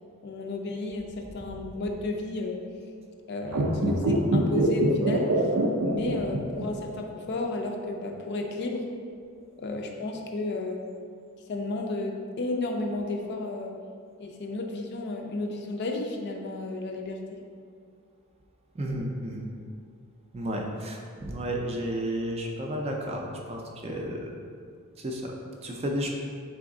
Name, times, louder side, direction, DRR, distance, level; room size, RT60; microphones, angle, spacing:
voice 1, 0.2-2.6 3.3-5.5 5.8-8.9 9.6-10.8 11.5-13.8 14.2-17.4, left 2 dB, 50° left, 2 dB, 0.4 m, -32 dB
sound 1, 3.5-6.9 7.1-7.2, right 2 dB, 85° right, 0.4 m, -24 dB
voice 2, 18.7-19.5 20.3-24.3 25.0-25.3 25.6-26.1, equal, 30° right, 0 dB, 0.4 m, -32 dB
3.9 x 3.4 x 3.7 m, 2.2 s
head